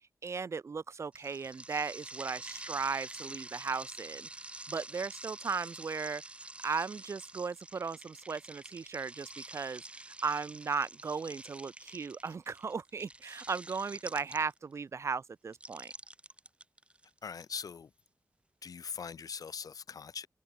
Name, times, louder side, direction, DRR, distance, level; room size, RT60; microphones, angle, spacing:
voice 1, 0.2-4.3 4.7-6.2 6.6-15.9, right 5 dB, 50° right, 0.7 m, -36 dB
sound 1, 1.1-14.8 15.5-17.4, right 2 dB, 20° right, 2.3 m, -47 dB
voice 2, 17.2-17.9 18.6-20.3, left 6 dB, 80° left, 3.7 m, -41 dB
wide cardioid pair, 145°, 6 cm